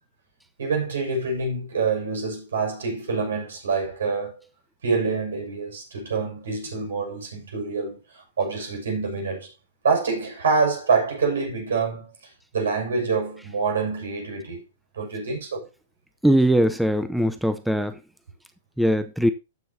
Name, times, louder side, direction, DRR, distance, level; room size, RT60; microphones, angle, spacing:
voice 1, 0.6-4.4 4.8-9.5 9.8-12.1 12.5-14.6 14.9-15.7, right 4 dB, 85° right, 6.0 m, -26 dB
voice 2, 16.2-18.0 18.8-19.3, equal, ahead, 0.7 m, -21 dB
14.5 x 6.1 x 2.8 m
hypercardioid pair, 130°, 0 cm